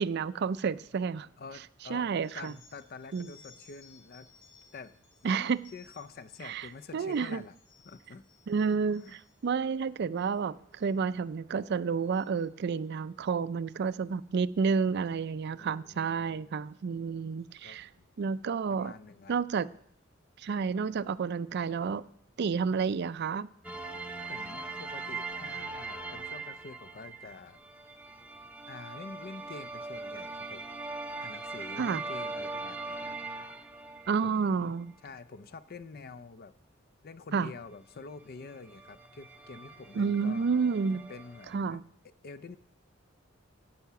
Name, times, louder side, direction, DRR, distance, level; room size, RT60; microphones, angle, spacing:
voice 1, 0.0-1.3 1.9-2.5 3.1-3.3 5.2-5.6 6.4-6.7 6.9-7.4 8.5-17.9 18.2-18.9 19.3-19.7 20.4-22.0 22.4-23.5 31.8-32.0 34.1-34.9 37.3-37.5 40.0-41.0 41.5-41.8, right 5 dB, 55° right, 0.4 m, -30 dB
voice 2, 1.4-4.3 4.7-4.9 5.2-7.5 7.8-8.2 9.0-9.2 15.6-16.6 17.6-18.1 18.7-19.4 24.3-27.6 28.7-30.7 31.2-33.2 34.2-36.5 37.0-40.5 41.1-41.8 42.2-42.6, left 4 dB, 50° left, 0.5 m, -47 dB
sound 1, 2.2-9.5 10.0-10.4 10.7-11.1 11.5-12.9 13.8-14.1 15.0-15.2 16.2-16.3 16.6-16.7 17.3-17.5, left 4 dB, 65° left, 3.0 m, -61 dB
sound 2, 23.6-34.4 38.1-38.2 38.4-41.6, right 3 dB, 5° right, 0.6 m, -41 dB
15.5 x 5.7 x 5.8 m
head